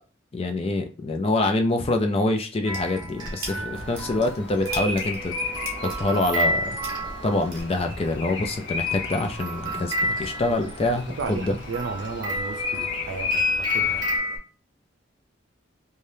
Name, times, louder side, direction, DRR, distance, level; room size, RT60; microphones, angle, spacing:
voice 1, 0.3-5.3 5.8-6.6 7.2-11.6, left 2 dB, 30° left, 0.4 m, -25 dB
sound 1, 2.6-7.6, right 2 dB, 50° right, 0.9 m, -39 dB
sound 2, 2.7-7.7 8.9-14.4, left 1 dB, 20° right, 1.3 m, -30 dB
Bird vocalization bird call bird song, 3.7-14.2, left 4 dB, 70° left, 0.8 m, -34 dB
voice 2, 10.5-14.1, right 4 dB, 80° right, 0.5 m, -34 dB
3.3 x 2.2 x 2.7 m
head